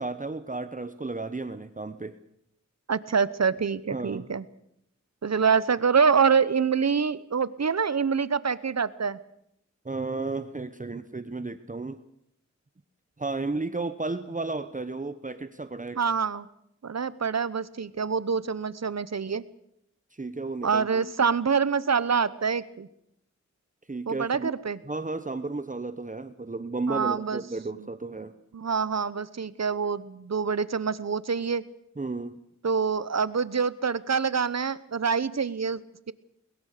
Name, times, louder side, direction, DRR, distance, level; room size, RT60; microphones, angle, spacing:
voice 1, 0.0-2.1 3.9-4.3 9.8-12.0 13.2-16.0 20.1-21.1 23.9-24.5 24.9-28.3 32.0-32.4, right 3 dB, 25° right, 11 dB, 1.0 m, -33 dB
voice 2, 2.9-4.4 5.2-9.2 16.0-16.5 16.8-19.4 20.6-22.9 24.1-24.8 26.9-27.4 27.8-27.9 28.5-31.6 32.6-35.8, right 6 dB, 65° right, 17 dB, 1.0 m, -26 dB
22.0 x 21.0 x 6.7 m, 0.76 s
wide cardioid pair, 60°, 29 cm